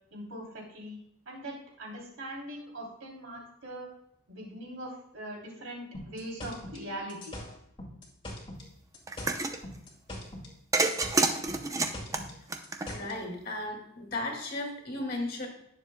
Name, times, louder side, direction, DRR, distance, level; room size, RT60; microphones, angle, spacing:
voice 1, 0.1-1.0 1.2-3.9 4.3-7.4, right 1 dB, 80° right, -2 dB, 3.1 m, -41 dB
sound 1, 5.9-8.7 8.9-10.5 10.8-13.2, left 1 dB, 25° left, 2.2 m, -42 dB
sound 2, 9.1-9.6 10.7-13.2, right 3 dB, 15° right, 0.6 m, -28 dB
voice 2, 12.9-15.5, left 2 dB, 45° left, 1 dB, 2.3 m, -35 dB
18.0 x 7.2 x 2.2 m, 0.77 s
head